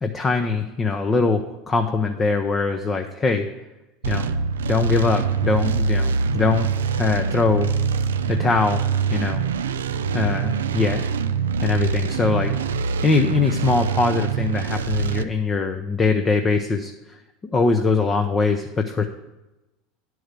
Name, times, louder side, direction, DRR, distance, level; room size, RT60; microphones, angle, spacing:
voice 1, 0.0-3.5 4.1-4.3 4.7-6.7 7.0-7.7 8.3-8.8 9.1-9.5 10.1-11.1 11.6-12.5 13.0-17.2 17.5-19.1, left 4 dB, 25° left, 5 dB, 0.7 m, -22 dB
sound 1, 4.0-15.2, right 5 dB, 85° right, 0.4 m, -24 dB
10.0 x 4.7 x 6.6 m, 1.0 s
hypercardioid pair, 85°, 0 cm